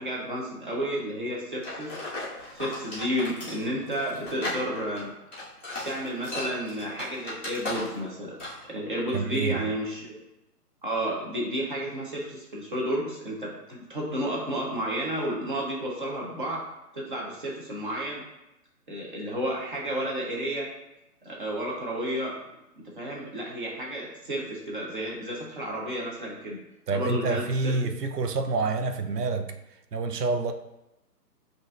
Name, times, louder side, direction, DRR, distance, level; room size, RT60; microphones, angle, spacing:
voice 1, 0.0-2.0 2.5-5.1 5.8-8.3 8.7-10.2 10.8-16.6 16.9-18.2 18.9-20.7 21.2-22.4 22.8-26.6 26.9-27.9, equal, 30° right, 0.8 m, -31 dB
sound 1, 1.6-8.1 8.4-8.6, left 2 dB, 10° left, 0.6 m, -36 dB
voice 2, 9.1-9.6 26.9-29.6 29.9-30.5, right 3 dB, 75° right, 0.6 m, -27 dB
7.9 x 2.6 x 2.4 m
figure-of-eight pair, 145°, 48 cm